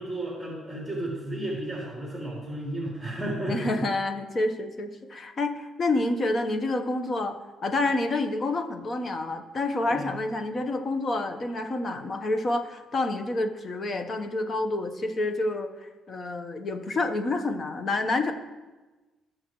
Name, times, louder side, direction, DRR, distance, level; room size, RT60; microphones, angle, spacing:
voice 1, 0.0-3.9 9.9-10.1, right 1 dB, 5° left, -5 dB, 3.7 m, -33 dB
voice 2, 3.5-7.4 7.6-18.3, left 2 dB, 45° left, 7 dB, 1.2 m, -28 dB
18.5 x 6.5 x 3.2 m, 1.2 s
cardioid pair, 90°, 0 cm